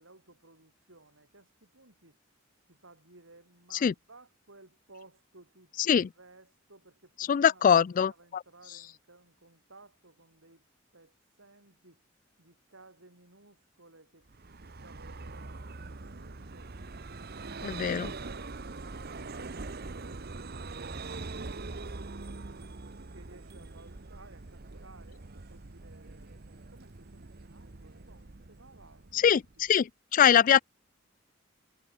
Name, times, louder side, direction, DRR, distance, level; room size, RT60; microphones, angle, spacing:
voice 1, 0.0-2.2 2.7-10.6 10.9-12.0 12.4-16.7 17.4-22.7 23.1-26.4 26.7-29.6 30.3-30.6, right 2 dB, 80° right, 5.8 m, -58 dB
voice 2, 7.3-8.4 17.6-18.1 29.1-29.4 29.7-30.6, left 8 dB, 45° left, 0.3 m, -23 dB
Vehicle, 14.3-29.8, right 3 dB, 50° right, 1.1 m, -43 dB
head